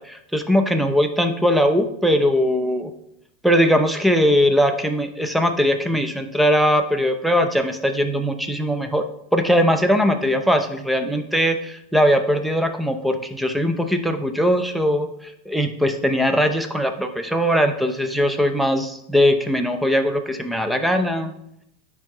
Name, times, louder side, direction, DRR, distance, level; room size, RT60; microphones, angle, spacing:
voice 1, 0.0-2.9 3.4-9.0 9.3-15.1 15.5-21.3, equal, ahead, 6 dB, 0.7 m, -20 dB
9.9 x 3.6 x 3.0 m, 0.76 s
hypercardioid pair, 105°, 0 cm